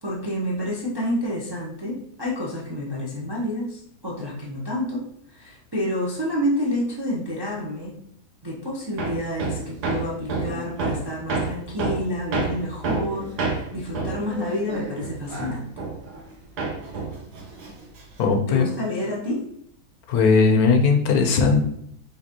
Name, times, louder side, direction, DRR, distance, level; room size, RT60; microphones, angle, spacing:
voice 1, 0.0-8.0 8.4-15.7 16.9-17.0 18.5-19.4, left 1 dB, 25° right, -4 dB, 0.5 m, -29 dB
Hammer, 9.0-16.3 16.6-18.3, right 3 dB, 80° right, 1.5 m, -29 dB
voice 2, 18.2-18.7 20.1-21.6, left 4 dB, 70° left, 4 dB, 1.1 m, -18 dB
5.1 x 3.5 x 2.9 m, 0.70 s
omnidirectional pair, 1.7 m